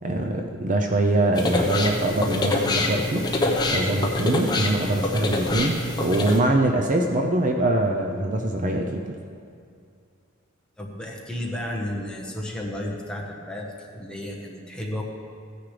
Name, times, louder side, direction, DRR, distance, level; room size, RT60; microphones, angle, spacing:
voice 1, 0.0-3.3 3.7-9.1, right 1 dB, 35° right, 3 dB, 0.6 m, -23 dB
sound 1, 1.3-6.4, left 2 dB, 20° left, 1.0 m, -25 dB
voice 2, 10.8-13.7 13.9-15.0, left 1 dB, 5° left, -2 dB, 1.2 m, -32 dB
15.5 x 9.6 x 3.3 m, 2.4 s
head